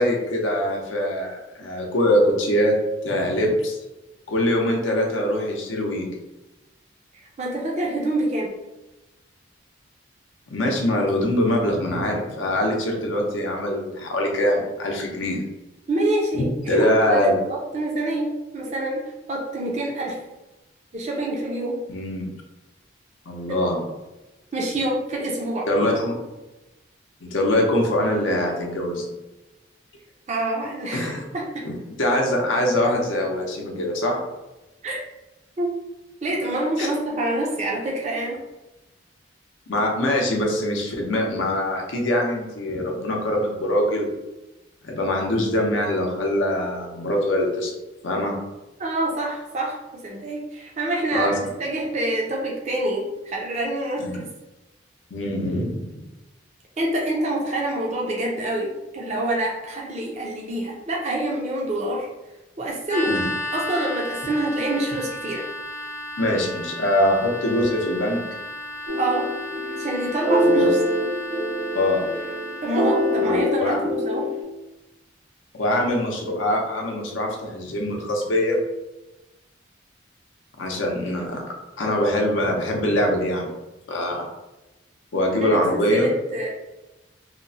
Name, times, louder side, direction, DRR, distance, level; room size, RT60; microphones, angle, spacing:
voice 1, 0.0-2.7 3.0-3.8 4.3-6.1 10.5-15.4 16.3-17.4 21.9-22.3 23.3-23.8 25.7-26.2 27.2-29.2 30.9-31.2 31.6-34.2 36.8-36.9 39.7-44.1 44.8-47.7 48.0-48.4 51.1-51.4 54.0-54.2 55.1-55.9 63.1-63.3 66.2-68.2 70.4-70.7 71.7-72.0 73.2-73.8 75.5-78.6 80.6-81.4 81.8-83.5 83.9-84.2 85.1-86.1, left 1 dB, 80° left, 1 dB, 0.6 m, -23 dB
voice 2, 7.4-8.5 15.9-19.0 19.3-20.2 20.9-21.8 24.5-25.7 30.3-31.6 34.8-35.0 35.6-35.7 36.2-38.4 48.8-49.8 50.0-54.3 56.8-62.1 62.6-63.2 63.5-65.4 69.0-69.3 69.8-70.8 72.6-74.2 85.3-86.5, right 1 dB, 35° right, -2 dB, 0.4 m, -26 dB
sound 1, 62.9-73.5, left 1 dB, 40° left, 0.6 m, -34 dB
sound 2, 68.9-74.4, left 1 dB, 80° right, 0.8 m, -24 dB
2.8 x 2.0 x 2.6 m, 1.0 s
head